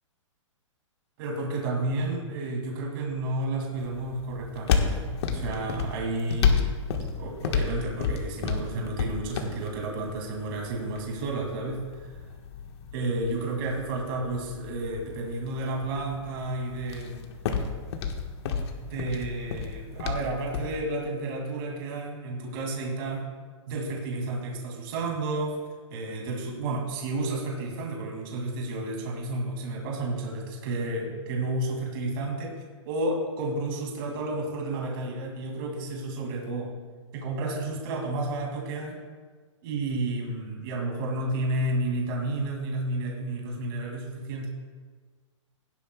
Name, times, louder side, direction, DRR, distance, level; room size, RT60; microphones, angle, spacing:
voice 1, 1.2-6.7 7.2-12.2 12.9-17.3 18.8-23.2 23.7-25.6 25.9-36.7 37.1-39.0 39.6-44.5, right 2 dB, 45° right, 0 dB, 2.6 m, -31 dB
sound 1, 3.8-20.8, left 6 dB, 55° left, 1.5 m, -32 dB
16.5 x 11.5 x 2.4 m, 1.5 s
hypercardioid pair, 140°, 16 cm